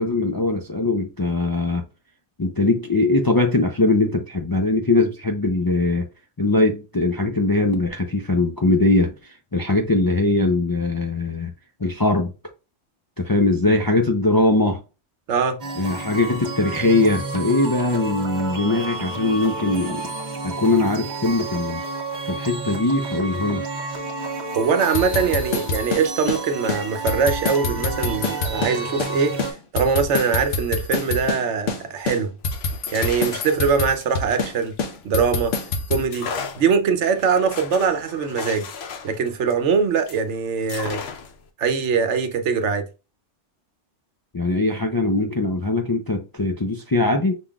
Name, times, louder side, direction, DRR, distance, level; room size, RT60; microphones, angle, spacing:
voice 1, 0.0-1.8 2.4-6.1 6.4-9.1 9.5-11.5 11.8-12.3 13.2-14.8 15.8-20.1 20.4-21.8 22.2-23.7 44.3-47.4, left 2 dB, 30° left, 0.4 m, -21 dB
sound 1, 15.6-29.5, right 3 dB, 40° right, 0.9 m, -31 dB
voice 2, 24.6-29.4 29.7-32.3 32.9-34.8 35.0-35.6 35.9-36.3 36.6-38.7 39.0-41.0 41.6-42.9, right 5 dB, 75° right, 1.0 m, -22 dB
sound 2, 24.8-26.4 26.7-26.8 27.1-29.1 29.4-31.4 31.7-31.8 32.1-34.5 34.8-36.0, left 3 dB, 85° left, 1.2 m, -26 dB
sound 3, 32.4-35.4 36.1-40.3 40.7-41.5, left 5 dB, 65° left, 0.9 m, -36 dB
5.8 x 3.7 x 2.3 m
omnidirectional pair, 1.2 m